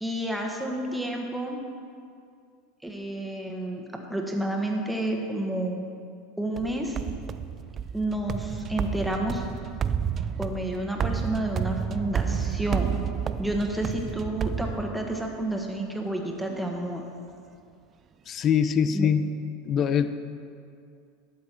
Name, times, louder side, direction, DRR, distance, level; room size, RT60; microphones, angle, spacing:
voice 1, 0.0-1.6 2.8-3.8 4.1-5.8 6.4-7.0 7.9-9.5 10.4-13.0 13.4-17.0 18.9-19.1, right 1 dB, 5° right, 1 dB, 1.5 m, -30 dB
sound 1, 6.6-15.3, right 7 dB, 35° right, 0.4 m, -31 dB
voice 2, 18.3-19.3 19.6-20.2, left 7 dB, 40° left, 11 dB, 0.6 m, -23 dB
12.0 x 7.5 x 4.6 m, 2.3 s
hypercardioid pair, 100°, 0 cm